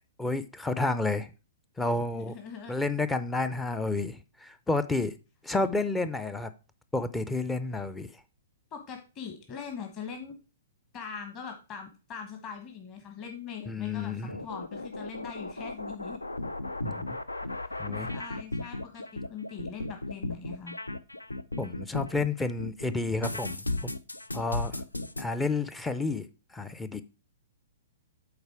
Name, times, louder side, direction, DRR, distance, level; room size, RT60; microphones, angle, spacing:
voice 1, 0.2-1.3 1.8-2.3 2.7-5.1 5.4-6.5 6.9-8.1 13.7-14.4 16.8-17.2 17.8-18.1 21.6-23.9 24.3-24.8 25.2-26.3 26.5-27.0, left 3 dB, 10° left, 0.5 m, -30 dB
voice 2, 2.1-2.7 5.5-5.7 8.7-10.3 10.9-14.1 14.4-16.2 17.4-17.8 18.1-20.8, left 6 dB, 30° left, 1.2 m, -42 dB
sound 1, 14.3-22.3 22.6-25.2, left 2 dB, 80° left, 0.5 m, -35 dB
8.0 x 4.3 x 4.7 m
figure-of-eight pair, 115°, 0 cm